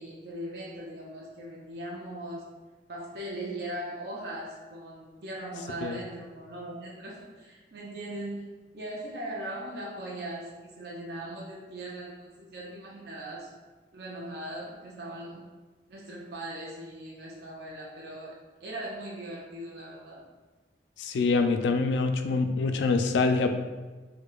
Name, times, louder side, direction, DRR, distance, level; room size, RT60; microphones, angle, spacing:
voice 1, 0.0-2.5 2.9-13.5 13.9-15.4 15.9-20.2, right 1 dB, 60° right, -4 dB, 0.5 m, -39 dB
voice 2, 21.0-23.5, left 4 dB, 80° left, 7 dB, 0.3 m, -25 dB
4.8 x 2.2 x 2.3 m, 1.3 s
head